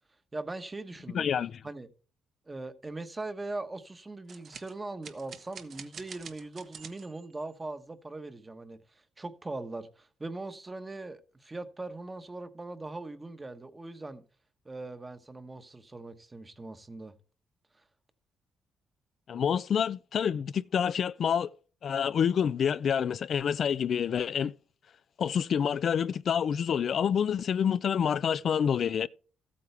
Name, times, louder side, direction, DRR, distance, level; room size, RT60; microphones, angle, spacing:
voice 1, 0.3-1.3 1.6-1.9 2.5-14.2 14.6-17.1 17.7-17.8, right 2 dB, 20° right, 1.2 m, -40 dB
voice 2, 1.1-1.6 19.3-21.5 21.8-24.5 25.2-29.1, left 8 dB, 55° left, 0.4 m, -27 dB
sound 1, 4.3-7.5, right 6 dB, 60° right, 1.3 m, -47 dB
14.0 x 8.6 x 3.4 m
cardioid pair, 90°, 0 cm